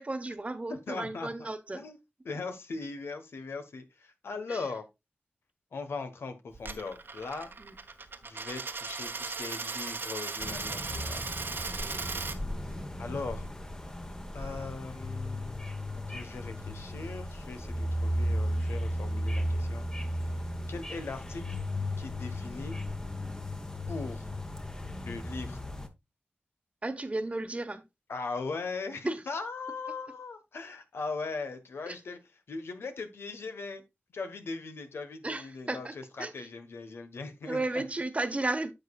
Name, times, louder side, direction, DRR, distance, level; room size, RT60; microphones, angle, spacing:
voice 1, 0.0-1.8 4.5-4.6 7.6-7.7 11.8-12.0 26.8-27.8 29.0-29.2 31.9-32.0 35.2-35.9 36.2-36.3 37.5-38.7, right 2 dB, 35° right, 1.1 m, -34 dB
voice 2, 0.7-1.5 1.7-2.0 2.2-4.8 5.7-7.5 8.2-11.2 13.0-13.5 14.3-15.6 16.1-19.8 20.7-21.4 22.0-22.8 23.9-24.2 25.0-25.6 28.1-32.2 32.5-33.8 34.1-37.8, left 4 dB, 90° left, 1.2 m, -39 dB
Coin (dropping), 6.5-12.4, right 4 dB, 65° right, 1.1 m, -37 dB
sound 1, 10.4-25.9, equal, 15° left, 1.1 m, -35 dB
10.5 x 6.5 x 2.4 m
wide cardioid pair, 65°, 4 cm